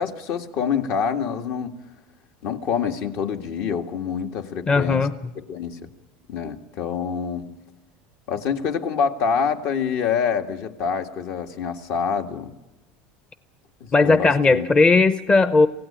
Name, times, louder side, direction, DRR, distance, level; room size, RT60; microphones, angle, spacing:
voice 1, 0.0-1.7 2.4-5.0 5.4-5.8 6.3-7.5 8.3-12.5 13.8-14.7, left 6 dB, 60° left, 5 dB, 2.0 m, -26 dB
voice 2, 4.7-5.1 13.9-15.7, left 3 dB, 20° left, 11 dB, 0.8 m, -17 dB
27.0 x 16.5 x 8.9 m, 1.0 s
supercardioid pair, 130°, 5 cm